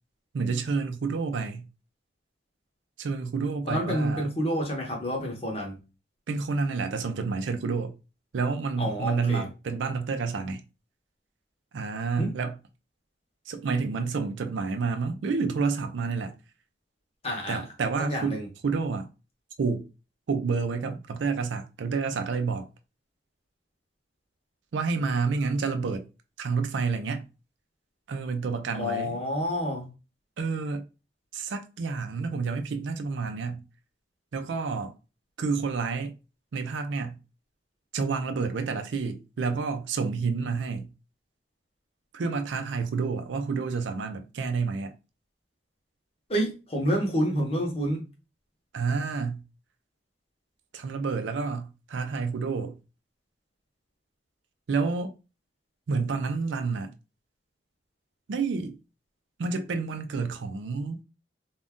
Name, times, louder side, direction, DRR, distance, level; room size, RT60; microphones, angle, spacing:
voice 1, 0.3-1.6 3.0-4.3 6.3-7.9 8.3-10.6 11.7-12.5 13.5-16.3 17.5-19.1 19.6-19.9 20.3-22.7 24.7-26.0 26.4-27.2 28.1-29.2 30.4-30.8 31.3-33.6 34.3-34.9 35.4-36.1 36.5-37.2 37.9-40.9 42.1-44.9 48.7-49.4 50.7-52.8 54.7-55.1 55.9-56.9 58.3-58.8 59.4-61.0, right 4 dB, 85° right, 0.4 m, -29 dB
voice 2, 3.7-5.8 8.8-9.5 12.2-12.3 17.2-17.6 18.0-18.5 28.7-29.8 46.3-48.0, equal, 35° left, 0.8 m, -28 dB
2.5 x 2.2 x 3.5 m
head